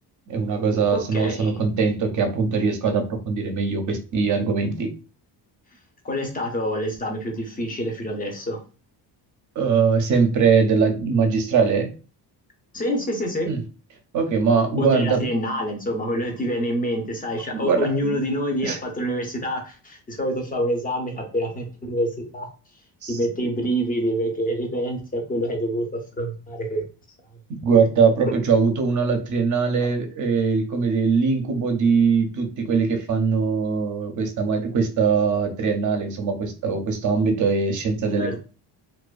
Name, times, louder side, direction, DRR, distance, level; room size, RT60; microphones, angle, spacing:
voice 1, 0.3-4.9 9.6-11.9 13.5-13.6 14.1-15.3 17.5-18.2 18.6-18.8 23.0-23.2 27.6-38.4, right 5 dB, 45° right, 5 dB, 0.5 m, -21 dB
voice 2, 0.9-1.5 6.0-8.6 12.7-13.5 14.8-22.5 23.1-26.8 38.2-38.4, equal, 20° left, 2 dB, 0.5 m, -26 dB
2.4 x 2.2 x 2.3 m, 0.35 s
cardioid pair, 140°, 43 cm